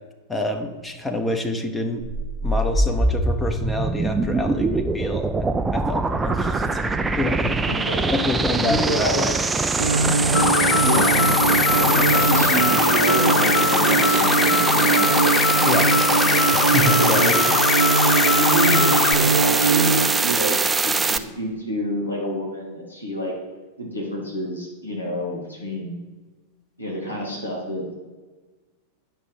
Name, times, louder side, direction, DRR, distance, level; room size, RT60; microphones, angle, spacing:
voice 1, 0.3-2.0 2.4-7.6 8.1-9.4 15.7-15.9 16.5-17.4, left 1 dB, 10° left, 4 dB, 1.0 m, -27 dB
sound 1, 2.0-21.2, right 3 dB, 15° right, 0.5 m, -23 dB
voice 2, 7.7-8.0 8.5-9.2 10.8-11.2 11.7-15.1 17.0-17.5 18.3-23.3 23.8-26.0 26.8-27.9, equal, 80° left, -2 dB, 2.4 m, -28 dB
sound 2, 9.8-20.1, right 4 dB, 70° right, 0.6 m, -22 dB
sound 3, 10.3-19.1, left 10 dB, 40° left, 0.5 m, -22 dB
9.9 x 5.9 x 5.6 m, 1.3 s
figure-of-eight pair, 90°, 0 cm